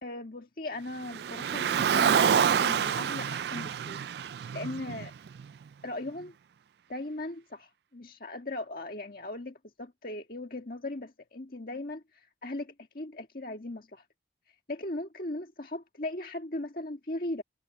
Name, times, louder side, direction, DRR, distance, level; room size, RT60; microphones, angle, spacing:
voice 1, 0.0-4.0 4.5-5.1 5.8-6.3 6.9-14.0 14.7-17.4, left 2 dB, 50° left, 1.8 m, -38 dB
Car, 1.1-5.4, right 7 dB, 65° right, 0.3 m, -27 dB
head